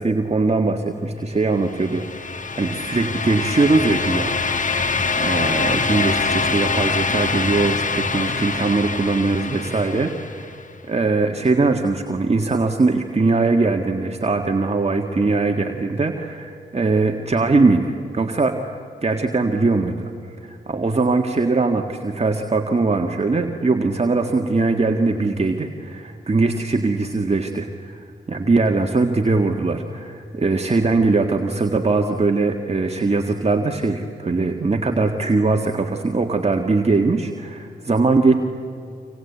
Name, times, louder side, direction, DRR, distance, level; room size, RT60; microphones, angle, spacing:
voice 1, 0.0-4.8 5.2-10.6 10.9-20.1 20.4-38.3, right 3 dB, 35° right, 3 dB, 1.7 m, -21 dB
sound 1, 1.6-10.5, left 4 dB, 45° left, 1.6 m, -24 dB
26.5 x 26.0 x 8.4 m, 2.5 s
supercardioid pair, 40°, 19 cm